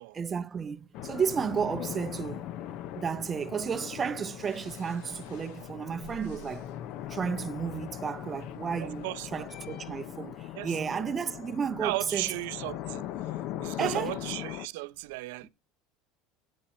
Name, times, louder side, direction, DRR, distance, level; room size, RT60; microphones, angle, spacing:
voice 1, 0.1-2.5 3.0-6.7 7.1-9.1 9.3-12.2 13.8-14.1, right 6 dB, 25° right, 0.6 m, -32 dB
sound 1, 0.9-14.7, left 12 dB, 55° left, 0.6 m, -40 dB
sound 2, 4.4-10.1, left 6 dB, 75° left, 1.2 m, -52 dB
voice 2, 8.8-9.5 10.5-11.1 11.8-13.1 13.6-15.5, right 21 dB, 80° right, 0.5 m, -35 dB
9.1 x 7.5 x 4.2 m
cardioid pair, 140°, 0 cm